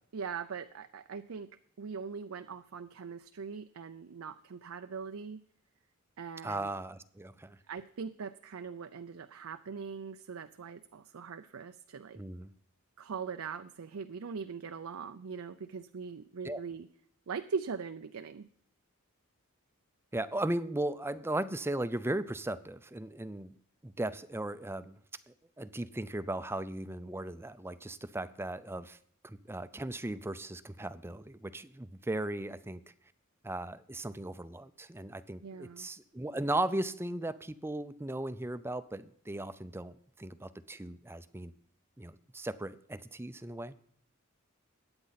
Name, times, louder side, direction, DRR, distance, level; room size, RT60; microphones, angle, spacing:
voice 1, 0.1-1.5 1.8-5.4 6.2-6.7 7.7-12.2 13.0-16.9 17.3-18.5 35.4-35.9, right 5 dB, 80° right, 9 dB, 0.5 m, -41 dB
voice 2, 6.4-7.6 12.1-12.5 16.4-16.6 20.1-23.6 23.8-25.0 25.3-29.0 29.2-32.8 33.4-41.5 42.0-43.8, right 1 dB, 10° right, 13 dB, 0.5 m, -37 dB
21.5 x 8.8 x 4.1 m, 0.64 s
head